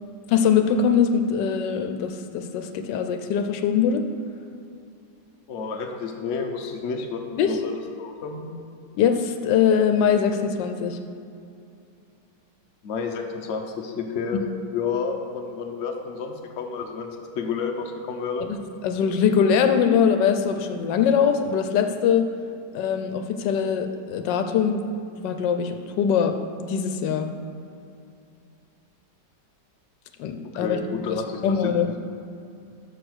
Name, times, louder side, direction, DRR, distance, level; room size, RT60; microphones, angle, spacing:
voice 1, 0.3-4.0 7.4-7.6 9.0-11.0 18.5-18.6 18.8-22.3 22.7-24.8 25.2-27.3 30.2-30.8 31.1-31.2 31.4-31.9, left 7 dB, 85° left, 7 dB, 1.3 m, -22 dB
voice 2, 5.5-8.5 12.8-14.4 14.7-17.1 17.3-18.5 30.5-31.7, left 5 dB, 50° left, 2 dB, 1.0 m, -30 dB
6.7 x 6.3 x 6.2 m, 2.5 s
omnidirectional pair, 1.9 m